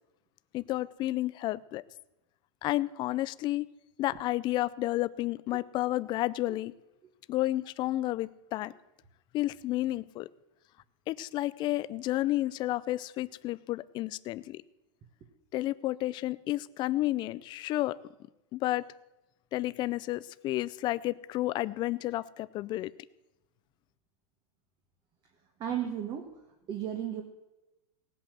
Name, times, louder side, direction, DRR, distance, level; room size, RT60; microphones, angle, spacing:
voice 1, 0.5-1.8 2.6-3.7 4.0-6.7 7.3-8.7 9.3-10.3 11.1-14.6 15.5-18.0 18.5-18.8 19.5-22.9, left 16 dB, 25° left, 17 dB, 0.5 m, -31 dB
voice 2, 25.6-26.4 26.7-27.2, right 10 dB, 25° right, 4 dB, 1.5 m, -34 dB
18.0 x 8.5 x 7.5 m, 1.0 s
supercardioid pair, 155°, 17 cm